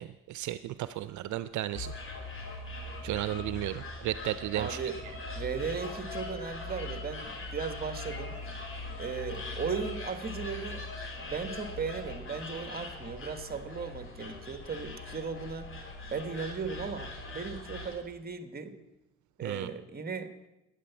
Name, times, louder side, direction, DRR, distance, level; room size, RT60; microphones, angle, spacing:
voice 1, 0.0-1.9 3.0-4.8 19.4-19.7, right 14 dB, 70° right, 14 dB, 0.5 m, -34 dB
sound 1, 1.7-18.0, left 2 dB, 45° left, 3.0 m, -41 dB
voice 2, 4.5-5.0 5.3-8.4 9.0-10.8 11.2-18.7 19.4-20.3, right 5 dB, 30° right, 9 dB, 1.4 m, -37 dB
12.0 x 9.2 x 7.1 m, 0.97 s
cardioid pair, 90°, 30 cm